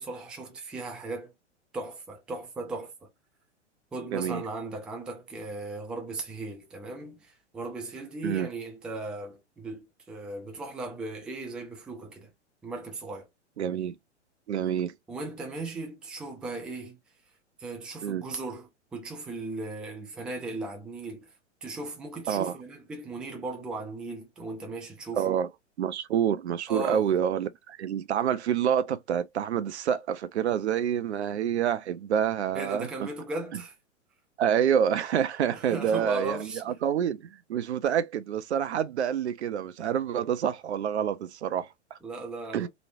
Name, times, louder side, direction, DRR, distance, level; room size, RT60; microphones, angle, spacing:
voice 1, 0.0-1.3 1.7-3.1 3.9-12.3 12.6-13.3 15.1-17.0 17.6-18.7 18.9-21.3 21.6-25.4 26.7-27.1 32.5-33.7 35.5-36.7 42.0-42.7, right 2 dB, 5° right, 0.3 m, -37 dB
voice 2, 4.1-4.4 8.2-8.5 13.6-14.0 14.5-15.0 18.0-18.3 22.3-22.6 25.1-25.5 25.8-33.1 33.5-33.6 34.4-42.0 42.5-42.7, right 9 dB, 65° right, 0.5 m, -27 dB
3.1 x 2.6 x 2.6 m
figure-of-eight pair, 100°, 36 cm